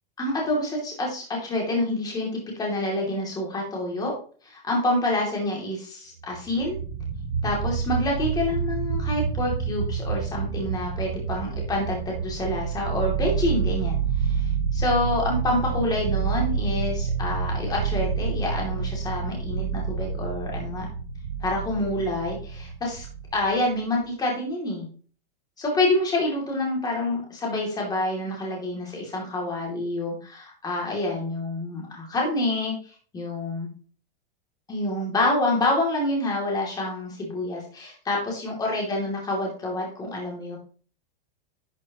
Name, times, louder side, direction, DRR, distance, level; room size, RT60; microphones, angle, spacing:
voice 1, 0.2-4.1 4.4-6.8 7.4-20.9 21.4-23.1 23.3-24.9 25.6-33.7 34.7-40.6, left 1 dB, 15° left, -1 dB, 2.7 m, -27 dB
sound 1, 6.3-23.7, right 6 dB, 80° right, 3.6 m, -28 dB
11.5 x 6.0 x 3.0 m, 0.42 s
supercardioid pair, 160°, 29 cm